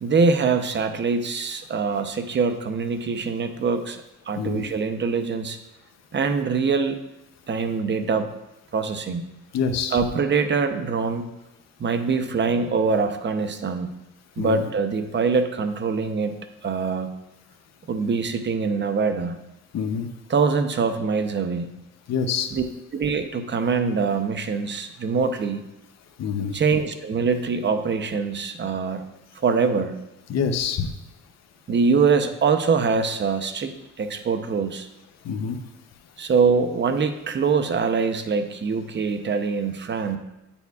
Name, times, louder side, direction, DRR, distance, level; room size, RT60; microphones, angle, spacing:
voice 1, 0.0-5.6 6.1-7.0 7.5-8.3 8.7-9.3 9.9-11.3 11.8-14.0 14.4-17.1 17.9-19.4 20.3-21.7 22.5-22.6 22.9-25.6 26.5-29.0 29.3-29.9 31.7-34.9 36.2-40.2, right 5 dB, 35° right, 8 dB, 0.7 m, -24 dB
voice 2, 9.5-10.0 14.4-14.6 19.7-20.1 22.1-22.5 26.2-26.5 30.3-30.9 35.2-35.6, left 6 dB, 60° left, 6 dB, 0.7 m, -26 dB
9.1 x 7.0 x 2.4 m, 0.90 s
cardioid pair, 90°, 30 cm